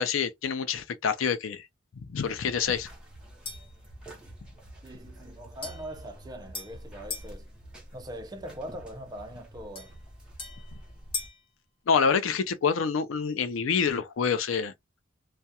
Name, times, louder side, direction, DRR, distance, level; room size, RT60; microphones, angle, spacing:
voice 1, 0.0-1.7 2.1-2.9 11.9-14.7, left 6 dB, 85° left, 0.4 m, -27 dB
sound 1, 2.2-11.3, right 1 dB, 5° right, 0.8 m, -48 dB
sound 2, 3.5-3.8 5.6-7.4 9.8-11.5, left 5 dB, 30° left, 0.8 m, -40 dB
voice 2, 4.8-7.5 7.9-10.0, right 1 dB, 20° right, 0.4 m, -41 dB
2.3 x 2.1 x 2.7 m
head